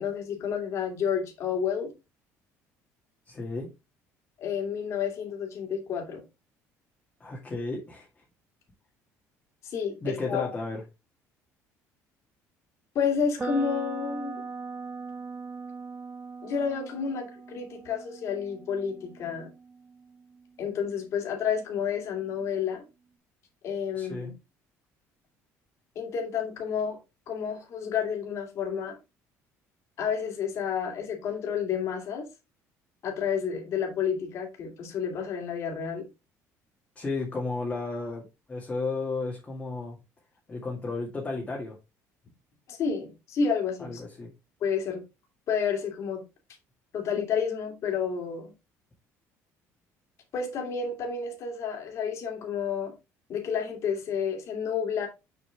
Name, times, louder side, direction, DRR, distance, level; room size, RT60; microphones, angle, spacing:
voice 1, 0.0-1.9 4.4-6.2 9.6-10.5 12.9-14.4 16.4-19.5 20.6-22.8 23.6-24.3 25.9-27.0 27.3-29.0 30.0-32.3 33.0-36.1 42.7-44.0 44.6-45.0 45.5-46.2 46.9-48.5 50.3-52.9 53.3-55.1, left 6 dB, 50° left, 2.6 m, -30 dB
voice 2, 3.3-3.7 7.2-8.1 10.0-10.8 23.9-24.3 37.0-40.0 40.5-41.8 43.8-44.3, left 3 dB, 20° left, 2.1 m, -33 dB
sound 1, 13.4-21.3, right 4 dB, 25° right, 1.2 m, -40 dB
6.7 x 5.9 x 3.4 m
cardioid pair, 135°, 6 cm